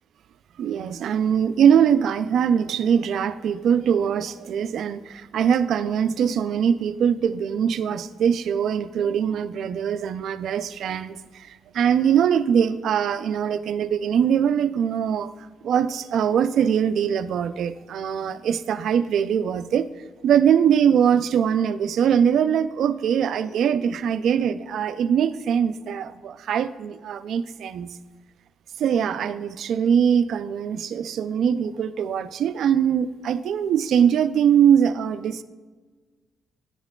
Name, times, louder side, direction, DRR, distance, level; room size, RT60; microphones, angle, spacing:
voice 1, 0.6-15.3 15.6-19.9 20.2-27.9 28.8-35.4, right 8 dB, 70° right, 13 dB, 0.3 m, -22 dB
10.5 x 8.0 x 2.2 m, 1.4 s
cardioid pair, 95°, 0 cm